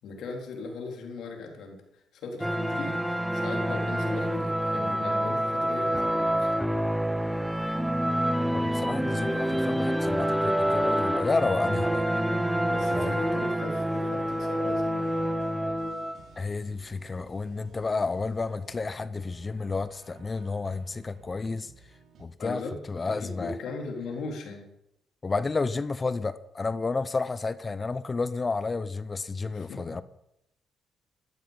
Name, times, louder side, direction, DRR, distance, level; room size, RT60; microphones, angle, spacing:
voice 1, 0.0-1.8 2.1-6.7 11.6-11.9 12.7-15.1 22.4-22.8 23.0-24.7 29.5-29.8, left 3 dB, 75° left, 1 dB, 3.8 m, -38 dB
sound 1, 2.4-16.3, equal, 5° right, 0.7 m, -27 dB
voice 2, 8.5-12.1 12.9-13.2 16.4-21.7 22.2-22.6 22.9-23.6 25.2-30.0, left 3 dB, 30° left, 15 dB, 0.7 m, -31 dB
sound 2, 10.5-22.3, right 4 dB, 65° right, 4.0 m, -55 dB
13.5 x 12.0 x 5.3 m, 0.82 s
cardioid pair, 90°, 0 cm